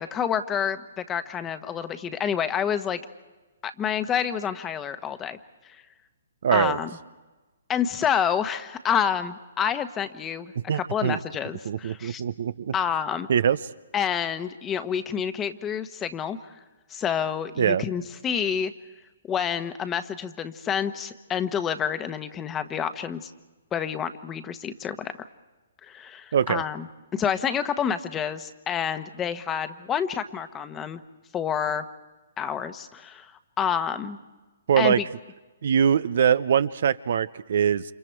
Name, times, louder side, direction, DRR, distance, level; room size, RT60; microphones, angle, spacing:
voice 1, 0.0-3.0 3.6-5.4 5.6-5.8 6.5-6.9 7.7-12.2 12.7-13.3 13.9-16.6 16.9-18.7 19.3-23.3 23.7-25.1 25.8-26.9 27.1-31.0 31.3-31.8 32.4-33.3 33.6-34.2 34.8-35.0, left 8 dB, 20° left, 10 dB, 1.2 m, -28 dB
voice 2, 6.4-6.8 10.7-11.2 11.6-12.7 13.3-13.6 17.6-17.8 26.3-26.6 34.7-35.0 35.6-37.8, right 8 dB, 60° right, 15 dB, 0.7 m, -22 dB
29.5 x 27.0 x 4.7 m, 1.2 s
hypercardioid pair, 130°, 0 cm